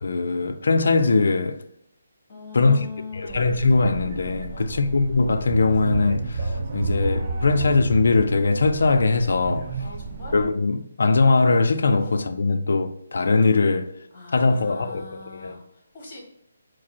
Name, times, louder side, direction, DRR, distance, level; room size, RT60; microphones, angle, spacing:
voice 1, 0.0-1.6 2.5-2.9 3.1-9.7 10.3-13.9 14.3-15.6, left 3 dB, 70° left, 0.4 m, -21 dB
voice 2, 2.3-3.5 4.5-4.9 9.8-10.4 14.1-16.2, left 4 dB, 30° left, 1.5 m, -41 dB
sound 1, 3.3-10.4, right 3 dB, 35° right, 0.6 m, -31 dB
4.7 x 2.0 x 4.3 m
hypercardioid pair, 165°, 0 cm